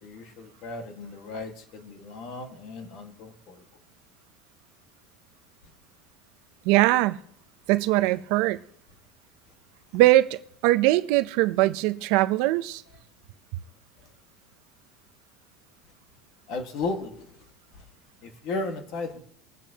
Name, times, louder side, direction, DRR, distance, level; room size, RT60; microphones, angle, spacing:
voice 1, 0.0-3.6 16.5-17.4 18.2-19.2, left 3 dB, 50° left, 1.7 m, -35 dB
voice 2, 6.7-7.2 7.7-8.6 9.9-12.8, right 17 dB, 60° right, 0.6 m, -21 dB
22.0 x 9.1 x 2.9 m
supercardioid pair, 155°, 0 cm